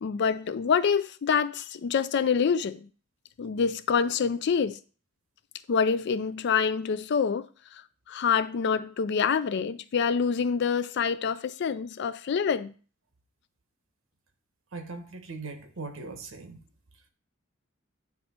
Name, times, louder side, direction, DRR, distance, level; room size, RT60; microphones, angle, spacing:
voice 1, 0.0-2.9 3.4-4.8 5.7-7.5 8.1-12.7, left 6 dB, 60° left, 0.4 m, -26 dB
voice 2, 14.7-16.6, right 3 dB, 80° right, 1.1 m, -40 dB
9.4 x 3.2 x 4.3 m
head